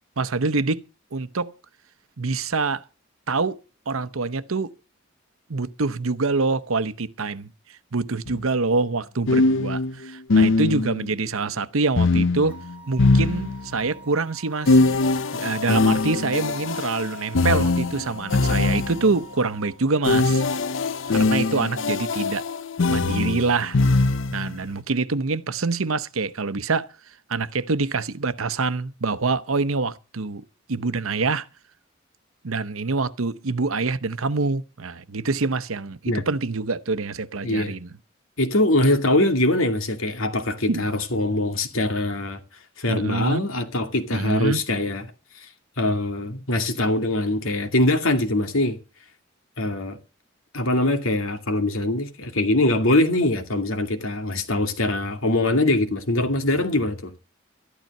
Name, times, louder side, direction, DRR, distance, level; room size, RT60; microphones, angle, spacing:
voice 1, 0.2-0.8 1.1-1.5 2.2-2.8 3.3-4.7 5.5-12.6 12.9-14.8 15.3-20.4 21.1-22.4 22.9-23.8 24.3-26.9 27.3-31.5 32.4-37.9 40.7-40.9 42.9-43.4 44.1-44.6, right 3 dB, 85° right, 0.9 m, -25 dB
sound 1, 8.3-8.4 9.3-11.1 12.0-13.9 14.7-19.2 20.0-24.5, left 3 dB, 65° left, 0.6 m, -22 dB
sound 2, 12.5-19.7, right 4 dB, 10° right, 3.1 m, -46 dB
voice 2, 37.4-37.7 38.4-42.4 42.8-45.0 45.4-45.5 45.8-48.8 49.6-50.0 50.5-57.1, left 1 dB, 85° left, 2.4 m, -23 dB
13.5 x 12.0 x 5.5 m
head